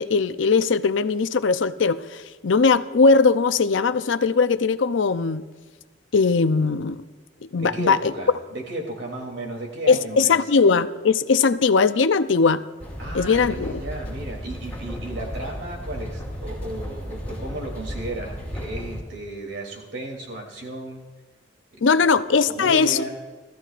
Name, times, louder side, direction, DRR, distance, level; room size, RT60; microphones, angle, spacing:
voice 1, 0.0-5.4 6.1-7.0 7.5-8.1 9.9-12.6 13.1-13.7 21.8-23.1, left 4 dB, 85° left, 12 dB, 0.6 m, -20 dB
voice 2, 7.6-10.5 13.0-21.0 22.0-22.1 22.4-23.1, right 1 dB, 70° right, 0 dB, 3.0 m, -34 dB
sound 1, 12.8-19.0, equal, 10° left, 4.0 m, -34 dB
30.0 x 14.0 x 2.5 m, 1.4 s
head